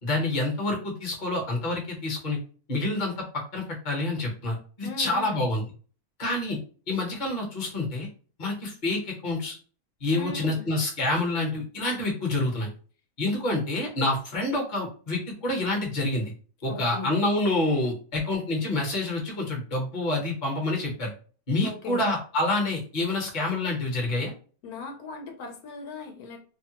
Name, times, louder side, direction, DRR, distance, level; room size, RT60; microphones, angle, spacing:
voice 1, 0.0-2.4 2.7-5.6 6.2-6.6 6.9-8.1 8.4-9.5 10.0-12.7 13.2-16.3 16.6-21.1 21.5-24.3, left 2 dB, 35° left, 0 dB, 1.0 m, -27 dB
voice 2, 4.8-5.4 10.1-10.7 16.7-17.1 21.6-22.1 24.6-26.4, left 3 dB, 85° left, 3 dB, 1.2 m, -38 dB
2.8 x 2.2 x 2.8 m, 0.40 s
omnidirectional pair, 1.5 m